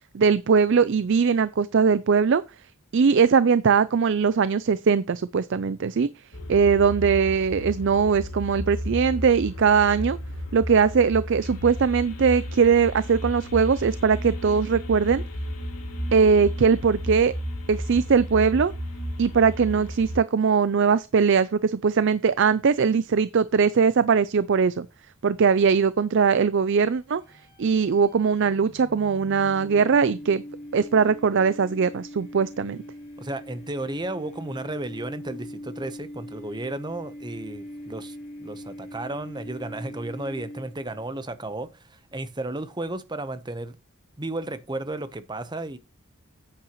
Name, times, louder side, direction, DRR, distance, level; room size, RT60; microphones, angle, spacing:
voice 1, 0.1-2.4 2.9-6.1 6.5-10.2 10.5-15.2 16.1-17.3 17.7-18.7 19.2-24.9 25.2-27.2 27.6-30.4 30.7-32.8, right 6 dB, 55° right, 0.4 m, -20 dB
sound 1, 6.3-20.2, equal, 80° left, 2.5 m, -33 dB
sound 2, 27.0-41.1, equal, 35° left, 2.7 m, -42 dB
voice 2, 33.2-43.8 44.2-45.8, right 2 dB, 20° right, 0.8 m, -33 dB
9.7 x 8.9 x 3.0 m
head